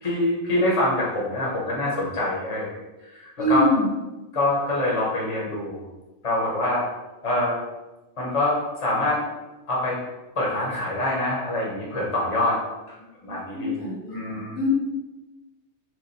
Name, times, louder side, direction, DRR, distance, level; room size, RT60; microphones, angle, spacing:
voice 1, 0.0-2.7 3.1-3.7 4.3-5.8 6.2-6.8 7.2-7.6 8.2-9.2 9.7-10.0 10.4-12.6 13.2-13.8 14.1-14.6, left 1 dB, 30° left, -4 dB, 0.9 m, -25 dB
voice 2, 3.4-3.9 13.2-14.7, equal, 60° left, -4 dB, 1.1 m, -25 dB
3.2 x 2.5 x 4.0 m, 1.1 s
omnidirectional pair, 1.2 m